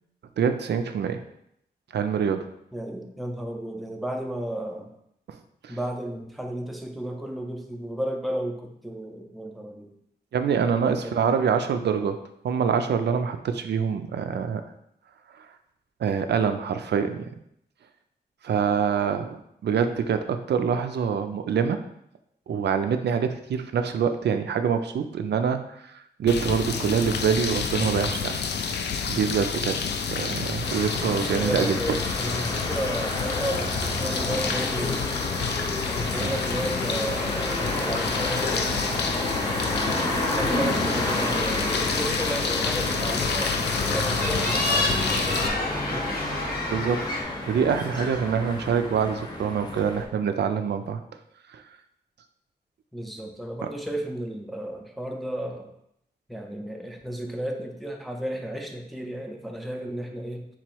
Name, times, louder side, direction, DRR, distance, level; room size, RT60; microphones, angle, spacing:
voice 1, 0.4-1.2 1.9-2.5 5.6-5.8 10.3-12.2 12.4-14.6 15.4-15.5 16.0-17.2 18.4-21.8 22.5-28.4 29.1-29.8 30.1-32.0 36.1-36.3 46.7-47.0 47.5-51.0 51.5-51.6, right 7 dB, 85° right, 8 dB, 0.4 m, -25 dB
voice 2, 2.7-4.9 5.7-9.9 10.8-11.5 31.1-35.2 35.9-38.8 39.6-46.2 52.9-55.7 56.3-60.5, right 1 dB, ahead, 2 dB, 0.5 m, -33 dB
sound 1, 26.3-45.5, left 5 dB, 90° left, 0.4 m, -29 dB
sound 2, 30.6-50.0, left 1 dB, 25° left, 0.8 m, -30 dB
sound 3, 36.1-47.2, left 2 dB, 60° left, 0.8 m, -34 dB
4.0 x 3.0 x 4.5 m, 0.76 s
wide cardioid pair, 155°, 17 cm